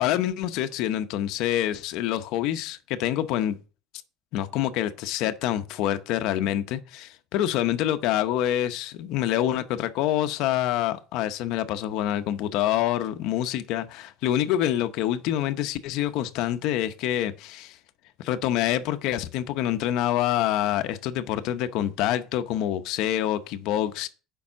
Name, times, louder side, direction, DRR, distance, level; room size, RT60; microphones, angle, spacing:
voice 1, 0.0-3.6 4.3-17.8 18.2-24.1, left 12 dB, 55° left, 0.8 m, -26 dB
6.9 x 5.4 x 7.3 m
cardioid pair, 180°, 0 cm